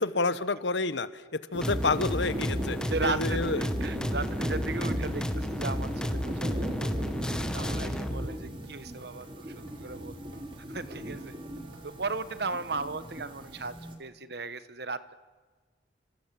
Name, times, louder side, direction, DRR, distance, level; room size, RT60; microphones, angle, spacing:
voice 1, 0.0-3.6, left 3 dB, 75° left, 13 dB, 1.2 m, -29 dB
sound 1, 1.5-13.9, equal, 30° right, 3.0 m, -37 dB
sound 2, 1.6-8.3, equal, 5° left, 1.4 m, -33 dB
voice 2, 2.8-6.9 7.4-10.2 10.7-11.3 11.8-15.1, right 3 dB, 60° right, 13 dB, 1.2 m, -36 dB
sound 3, 4.9-11.8, right 2 dB, 80° right, 4.0 m, -56 dB
28.0 x 27.0 x 7.6 m, 1.4 s
head